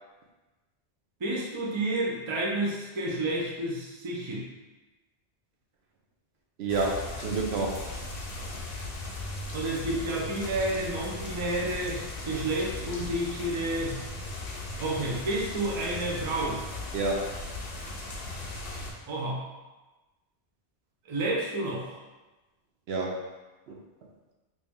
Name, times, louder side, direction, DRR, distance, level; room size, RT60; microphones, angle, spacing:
voice 1, 1.2-4.5 9.5-14.0 14.8-16.6 19.1-19.5 21.0-22.0, right 1 dB, 35° right, -3 dB, 0.5 m, -30 dB
voice 2, 6.6-7.9 16.9-17.3 22.9-23.2 23.7-23.8, right 3 dB, 75° right, 0 dB, 0.8 m, -29 dB
sound 1, 6.7-18.9, left 2 dB, 60° left, 0.8 m, -38 dB
3.1 x 2.6 x 3.5 m, 1.1 s
omnidirectional pair, 1.1 m